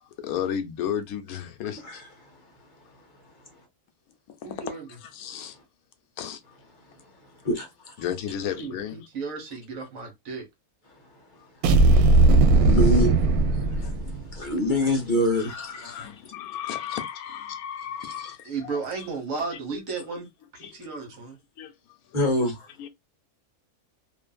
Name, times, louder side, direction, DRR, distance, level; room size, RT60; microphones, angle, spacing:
voice 1, 0.0-2.0 4.3-4.4 5.1-5.6 6.2-6.4 8.0-9.0 12.9-13.0 13.6-13.9 14.9-15.0 15.3-18.8 19.7-19.8 20.6-20.9 21.6-21.7 22.1-22.3 22.8-22.9, left 9 dB, 80° left, 1.1 m, -34 dB
voice 2, 4.4-4.9 8.6-10.5 18.4-20.3 20.5-21.4, right 4 dB, 65° right, 1.3 m, -34 dB
sound 1, 11.6-14.4, right 2 dB, 80° right, 1.1 m, -18 dB
voice 3, 12.6-13.1 14.3-15.9 18.2-18.3 22.1-22.6, left 1 dB, 40° left, 0.8 m, -24 dB
2.6 x 2.5 x 2.2 m
omnidirectional pair, 1.6 m